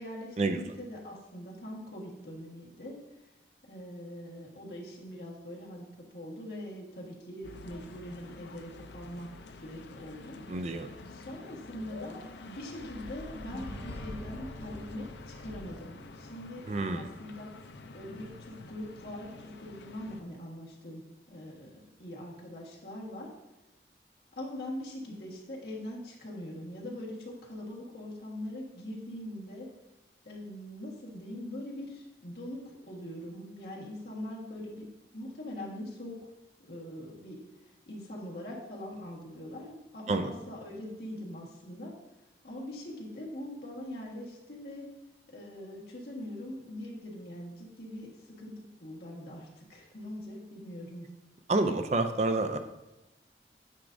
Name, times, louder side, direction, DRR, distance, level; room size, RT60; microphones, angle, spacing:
voice 1, 0.0-3.0 3.6-10.4 11.1-16.7 16.9-17.5 17.9-23.3 24.3-29.7 30.2-36.3 36.6-37.4 37.9-42.0 42.4-44.9 45.3-51.1, left 1 dB, 65° left, -3 dB, 1.4 m, -42 dB
sound 1, 7.4-20.2, left 2 dB, 85° left, 0.5 m, -47 dB
voice 2, 10.5-10.9 16.7-17.1 40.1-40.3 51.5-52.6, right 2 dB, 40° right, 8 dB, 0.4 m, -28 dB
sound 2, 13.5-17.1, equal, 30° left, 1.5 m, -48 dB
9.1 x 4.9 x 2.6 m, 1.0 s
head